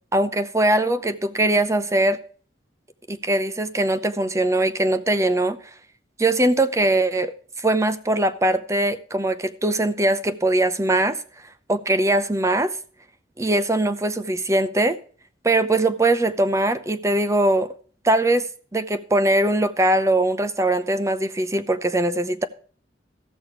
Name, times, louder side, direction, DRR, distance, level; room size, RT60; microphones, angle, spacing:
voice 1, 0.1-2.2 3.1-5.6 6.2-11.2 11.7-12.7 13.4-15.0 15.4-17.7 18.0-18.5 18.7-22.5, right 1 dB, 15° right, 0.7 m, -21 dB
15.0 x 6.4 x 4.7 m
head